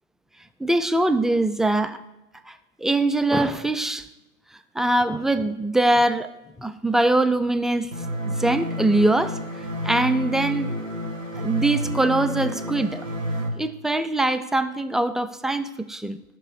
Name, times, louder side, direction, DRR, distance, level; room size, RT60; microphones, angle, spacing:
voice 1, 0.6-2.0 2.5-4.1 4.8-6.3 6.6-7.9 8.3-9.4 9.8-10.7 11.4-13.0 13.6-16.2, right 2 dB, ahead, 11 dB, 0.3 m, -22 dB
sound 1, 7.9-13.5, equal, 55° right, 2.0 m, -30 dB
9.7 x 6.1 x 8.2 m, 0.95 s
figure-of-eight pair, 180°, 46 cm